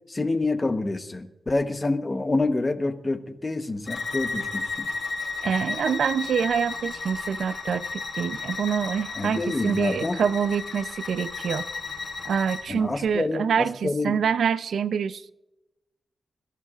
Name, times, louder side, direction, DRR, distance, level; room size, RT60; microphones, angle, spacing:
voice 1, 0.1-4.9 9.2-10.2 12.7-14.2, left 2 dB, 20° left, 1.0 m, -27 dB
Bowed string instrument, 3.9-12.7, left 4 dB, 50° left, 4.5 m, -33 dB
voice 2, 5.4-11.7 12.2-15.3, right 7 dB, 65° right, 0.5 m, -26 dB
27.0 x 15.0 x 2.4 m
wide cardioid pair, 160°, 0 cm